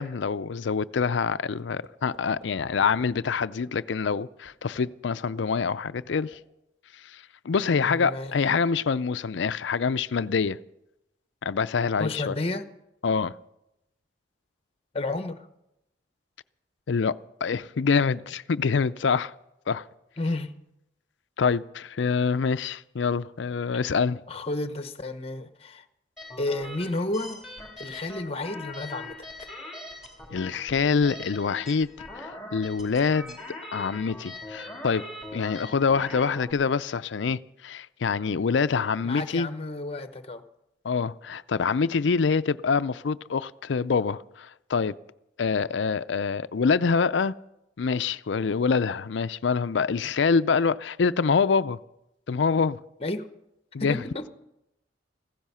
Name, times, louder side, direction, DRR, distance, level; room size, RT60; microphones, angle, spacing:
voice 1, 0.0-6.4 7.0-10.6 11.4-12.3 13.0-13.3 16.9-19.3 19.7-19.8 21.4-24.2 30.3-33.4 33.7-35.0 35.3-39.5 40.8-44.9 45.4-47.3 47.8-51.8 52.3-52.8 53.7-54.0, left 5 dB, 80° left, 0.5 m, -25 dB
sound 1, 1.6-1.9 2.1-2.5 2.8-3.0 3.4-3.6 4.0-4.1 4.4-5.1 5.4-6.4, equal, 40° right, 2.9 m, -50 dB
voice 2, 7.8-8.5 12.0-12.7 14.9-15.5 20.2-20.5 24.3-25.8 26.4-27.4 27.8-29.5 39.0-40.4 53.0-53.3 53.8-54.3, left 2 dB, 35° left, 1.0 m, -32 dB
sound 2, 26.2-36.5, left 2 dB, ahead, 3.7 m, -42 dB
16.0 x 15.5 x 5.6 m
head